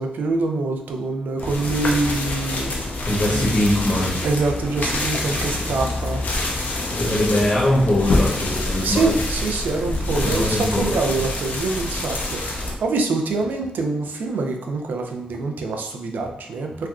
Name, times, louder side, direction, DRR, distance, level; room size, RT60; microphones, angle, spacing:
voice 1, 0.0-2.7 3.3-3.6 4.2-6.2 8.8-16.9, right 3 dB, 75° right, 3 dB, 0.4 m, -25 dB
sound 1, 1.4-12.8, left 2 dB, 70° left, 0.5 m, -26 dB
voice 2, 3.1-4.2 6.9-9.1 10.2-10.9, left 1 dB, 55° left, -7 dB, 0.9 m, -21 dB
3.2 x 2.3 x 2.3 m, 0.82 s
supercardioid pair, 45°, 3 cm